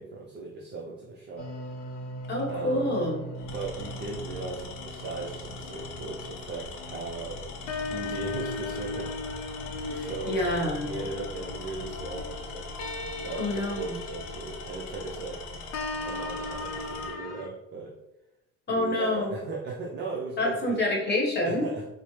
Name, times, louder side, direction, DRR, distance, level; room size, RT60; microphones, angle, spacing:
voice 1, 0.0-1.5 2.5-3.0 3.5-7.5 7.9-9.1 9.6-10.4 10.8-12.7 13.2-15.4 16.0-18.0 18.7-20.8 21.4-21.9, right 3 dB, 30° right, -3 dB, 0.6 m, -37 dB
sound 1, 1.4-17.5, left 2 dB, 50° left, 0.6 m, -38 dB
Tools, 2.2-2.5 3.3-17.2, left 4 dB, 80° left, 0.8 m, -41 dB
voice 2, 2.3-3.2 9.9-11.0 13.4-13.9 18.7-19.4 20.4-21.7, left 1 dB, 30° left, -1 dB, 1.1 m, -27 dB
4.3 x 2.1 x 3.2 m, 0.90 s
cardioid pair, 125°, 35 cm